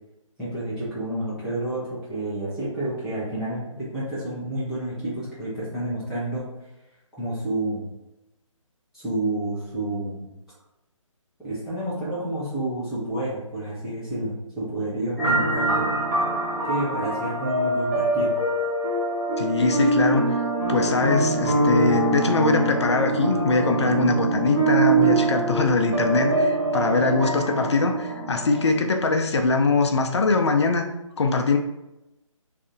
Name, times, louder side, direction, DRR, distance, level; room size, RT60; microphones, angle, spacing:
voice 1, 0.4-6.4 7.1-7.9 8.9-10.3 11.4-15.8 16.6-18.3, right 1 dB, ahead, -13 dB, 0.4 m, -29 dB
sound 1, 15.2-28.7, right 2 dB, 25° right, 1.1 m, -24 dB
voice 2, 19.4-20.4 20.7-30.9 31.2-31.6, left 3 dB, 55° left, 4 dB, 0.5 m, -22 dB
3.4 x 2.5 x 3.7 m, 0.94 s
figure-of-eight pair, 145°, 17 cm